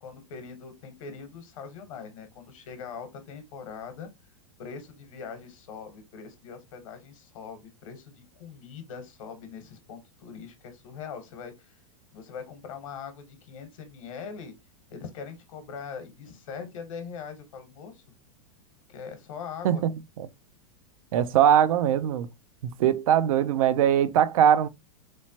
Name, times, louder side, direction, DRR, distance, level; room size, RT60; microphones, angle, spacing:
voice 1, 0.0-4.1 4.6-11.8 12.1-14.5 14.9-18.0 18.9-19.8, left 6 dB, 70° left, 0.9 m, -41 dB
voice 2, 21.1-22.3 22.6-24.7, right 10 dB, 80° right, 0.4 m, -21 dB
3.1 x 2.1 x 2.7 m
supercardioid pair, 135°, 17 cm